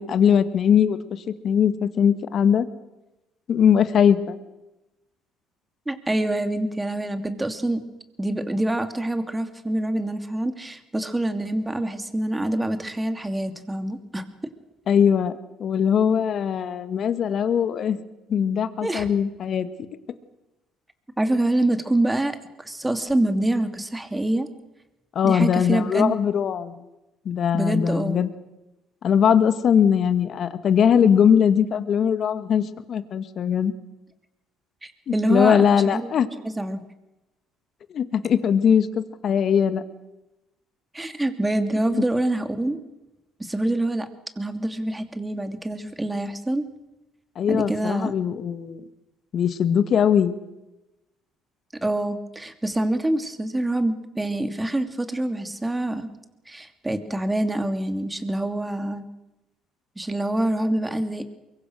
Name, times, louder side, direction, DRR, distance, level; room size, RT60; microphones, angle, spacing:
voice 1, 0.0-2.7 3.5-4.4 14.9-15.3 15.6-18.0 18.3-19.7 25.2-26.7 27.3-28.3 29.0-33.7 35.1-36.3 37.9-39.8 41.9-42.0 47.4-48.8 49.3-50.4, left 8 dB, 55° left, 12 dB, 1.9 m, -20 dB
voice 2, 5.9-7.8 8.2-14.2 18.8-19.1 21.2-24.5 25.2-26.2 27.5-28.2 34.8-36.1 36.4-36.8 40.9-42.8 43.4-44.1 44.4-46.7 47.5-48.1 51.8-56.1 56.5-59.1 60.0-61.3, right 1 dB, 15° right, 8 dB, 3.0 m, -26 dB
23.5 x 23.0 x 6.6 m, 0.97 s
supercardioid pair, 65°, 0 cm